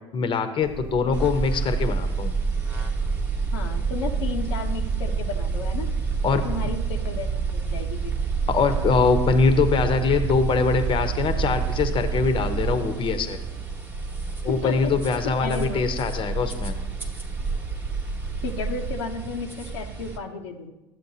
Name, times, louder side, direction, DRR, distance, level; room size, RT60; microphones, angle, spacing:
voice 1, 0.1-2.3 6.2-6.4 8.5-13.4 14.4-16.8, left 5 dB, 40° left, 8 dB, 0.8 m, -23 dB
sound 1, 0.6-18.9, right 2 dB, 65° right, 1.0 m, -35 dB
sound 2, 1.1-20.2, right 5 dB, 15° right, 1.1 m, -29 dB
voice 2, 3.5-5.9 6.3-8.1 14.5-14.9 15.4-15.8 18.4-20.7, left 4 dB, 80° left, 2 dB, 0.8 m, -33 dB
12.0 x 7.3 x 2.8 m, 1.0 s
hypercardioid pair, 80°, 14 cm